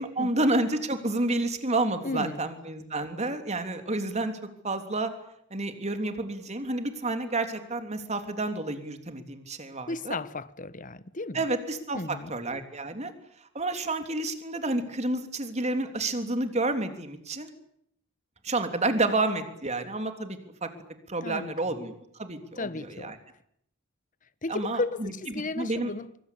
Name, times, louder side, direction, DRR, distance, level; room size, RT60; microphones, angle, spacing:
voice 1, 0.0-4.3 4.6-5.1 5.5-10.2 11.3-12.0 12.3-13.1 13.5-17.5 18.4-20.7 21.1-23.1 24.5-25.1 25.5-25.9, right 2 dB, 35° right, 3.3 m, -30 dB
voice 2, 2.0-2.4 9.9-11.4 11.9-12.3 21.2-21.7 22.6-23.2 24.4-26.1, left 2 dB, 40° left, 1.2 m, -34 dB
24.5 x 24.0 x 8.4 m
head